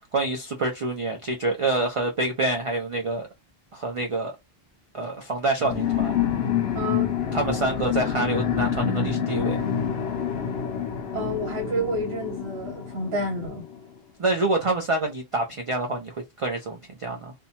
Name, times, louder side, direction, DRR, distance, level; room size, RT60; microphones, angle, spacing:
voice 1, 0.1-3.3 3.7-4.3 4.9-6.2 7.3-9.6 14.2-17.3, right 2 dB, 45° right, 0.4 m, -27 dB
sound 1, 5.6-13.8, left 8 dB, 80° left, 0.8 m, -27 dB
voice 2, 6.7-7.1 11.1-13.6, equal, 75° right, 1.2 m, -29 dB
2.6 x 2.2 x 2.8 m
omnidirectional pair, 1.0 m